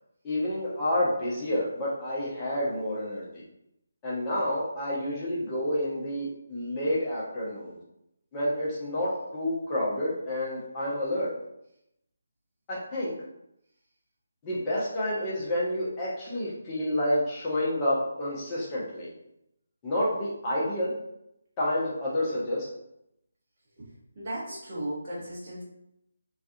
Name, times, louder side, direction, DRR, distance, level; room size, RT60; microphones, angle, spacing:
voice 1, 0.2-3.4 4.0-7.8 8.3-11.3 12.7-13.1 14.4-19.1 19.8-20.9 21.6-22.7, left 1 dB, 20° left, -7 dB, 0.5 m, -29 dB
voice 2, 24.1-25.6, right 1 dB, 35° right, -7 dB, 0.9 m, -35 dB
2.4 x 2.3 x 2.5 m, 0.82 s
figure-of-eight pair, 150°, 0 cm